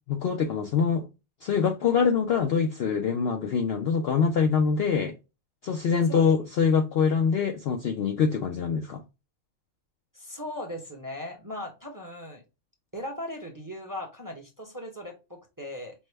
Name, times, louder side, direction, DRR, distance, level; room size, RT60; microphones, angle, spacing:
voice 1, 0.1-1.1 1.4-5.1 5.6-9.0, left 6 dB, 65° left, 0.6 m, -24 dB
voice 2, 10.1-12.4 12.9-15.9, left 1 dB, 20° right, 0.7 m, -38 dB
5.3 x 2.1 x 3.2 m
omnidirectional pair, 1.5 m